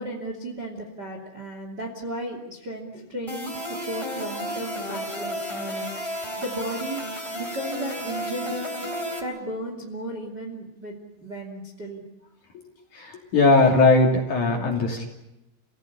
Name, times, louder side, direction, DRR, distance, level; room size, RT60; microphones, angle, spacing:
voice 1, 0.0-7.0 7.3-8.6 9.2-12.0, right 1 dB, 30° right, 2 dB, 2.4 m, -35 dB
sound 1, 3.3-9.2, equal, 5° left, 3.1 m, -32 dB
voice 2, 12.9-15.1, left 3 dB, 45° left, 2 dB, 3.7 m, -19 dB
28.5 x 17.5 x 9.9 m, 0.93 s
omnidirectional pair, 5.8 m